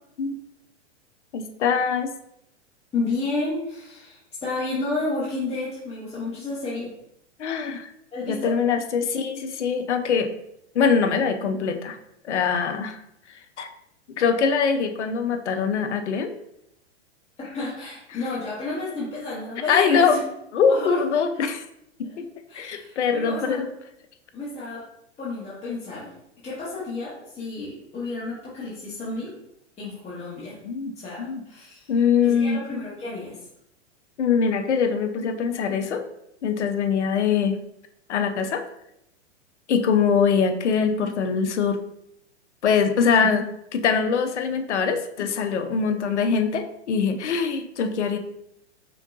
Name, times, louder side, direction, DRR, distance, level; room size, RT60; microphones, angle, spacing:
voice 1, 1.3-2.1 7.4-7.9 8.3-10.3 10.7-12.0 12.2-13.0 13.6-13.7 14.1-16.3 19.7-20.2 20.5-21.6 22.0-22.3 22.5-23.7 30.6-30.9 31.2-31.4 31.9-32.6 34.2-36.0 36.4-37.6 38.1-38.6 39.7-41.8 42.6-48.2, left 6 dB, 75° left, 8 dB, 0.7 m, -23 dB
voice 2, 2.9-6.9 8.1-8.5 17.4-20.2 20.7-21.4 22.5-23.7 24.3-24.8 25.2-26.1 26.4-29.3 29.8-30.6 31.0-31.9 32.2-33.4, left 3 dB, 20° left, -9 dB, 1.4 m, -31 dB
5.2 x 3.7 x 2.5 m, 0.79 s
hypercardioid pair, 105°, 35 cm